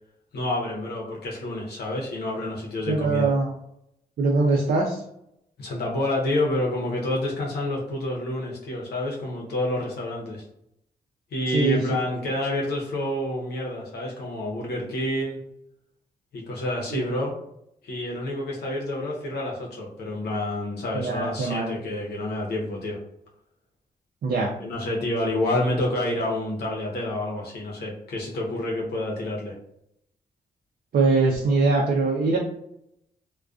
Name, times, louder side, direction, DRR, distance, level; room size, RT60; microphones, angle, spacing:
voice 1, 0.3-3.3 5.6-10.4 11.3-15.4 16.3-17.4 17.8-23.0 24.6-29.6, left 1 dB, 80° left, -2 dB, 0.7 m, -28 dB
voice 2, 2.9-3.5 4.2-5.0 11.5-11.8 16.9-17.1 20.9-21.8 24.2-24.5 30.9-32.4, right 3 dB, 65° right, -2 dB, 0.5 m, -22 dB
2.4 x 2.2 x 2.3 m, 0.76 s
cardioid pair, 75°, 17 cm